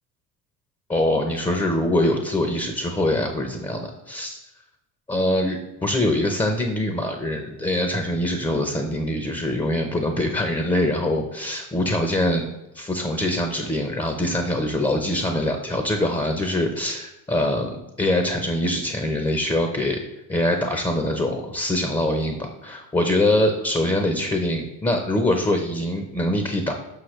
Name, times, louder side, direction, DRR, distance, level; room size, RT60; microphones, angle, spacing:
voice 1, 0.9-4.4 5.1-12.5 12.7-20.0 20.3-26.7, left 1 dB, 10° left, 4 dB, 0.6 m, -23 dB
6.6 x 5.5 x 3.2 m, 0.92 s
supercardioid pair, 85°, 45 cm